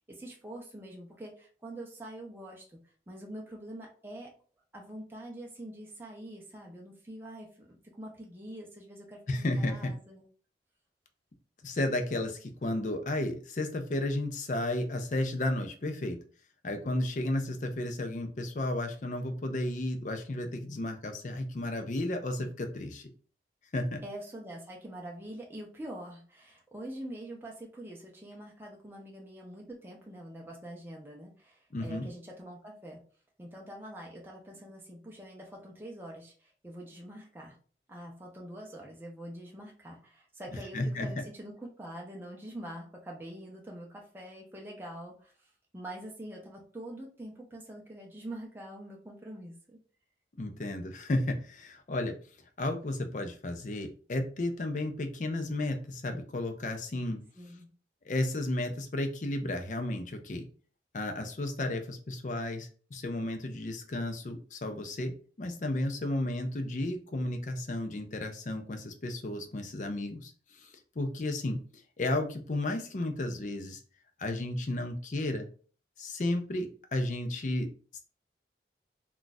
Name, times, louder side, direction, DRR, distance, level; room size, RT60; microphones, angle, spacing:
voice 1, 0.1-2.8 3.1-4.3 4.7-10.3 24.0-33.0 33.4-37.6 37.9-49.8 57.3-57.7, right 1 dB, 10° right, -1 dB, 0.5 m, -45 dB
voice 2, 9.3-9.9 11.6-16.2 16.6-23.0 23.7-24.0 31.7-32.1 40.7-41.1 50.4-52.2 52.6-57.2 58.0-60.5 60.9-70.3 70.6-71.6 72.0-73.8 74.2-75.5 76.0-77.7 77.9-78.0, left 1 dB, 45° left, 6 dB, 0.5 m, -33 dB
2.4 x 2.3 x 3.9 m, 0.41 s
head